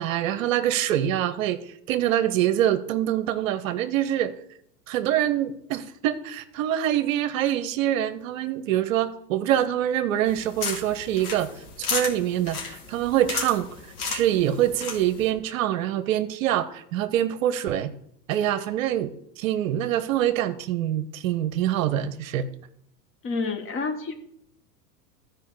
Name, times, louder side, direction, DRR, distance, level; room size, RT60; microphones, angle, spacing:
voice 1, 0.0-1.6 1.9-4.3 4.9-11.5 11.8-13.7 14.0-17.9 18.3-19.1 19.4-22.4, right 11 dB, 55° right, 13 dB, 0.8 m, -25 dB
sound 1, 10.3-15.3, left 5 dB, 70° left, 2.4 m, -34 dB
voice 2, 23.2-24.1, left 4 dB, 25° left, 6 dB, 1.3 m, -28 dB
13.5 x 4.8 x 4.7 m, 0.76 s
hypercardioid pair, 95°, 49 cm